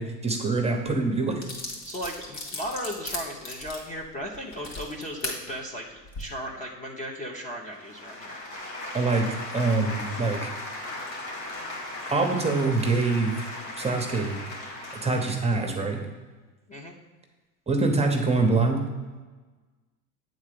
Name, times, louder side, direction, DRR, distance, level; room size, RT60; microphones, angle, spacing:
voice 1, 0.0-1.4 8.9-9.3 9.5-10.5 12.1-13.3 13.8-14.4 15.0-16.0 17.7-18.8, right 3 dB, 15° right, 3 dB, 0.8 m, -24 dB
sound 1, 0.9-1.0 1.4-5.4 6.0-6.2, left 2 dB, 55° left, 2.4 m, -36 dB
voice 2, 1.8-8.4 16.7-16.9, equal, 15° left, -1 dB, 0.7 m, -36 dB
sound 2, 7.7-15.7, left 2 dB, 90° left, 1.8 m, -37 dB
8.3 x 3.8 x 5.1 m, 1.3 s
hypercardioid pair, 95°, 49 cm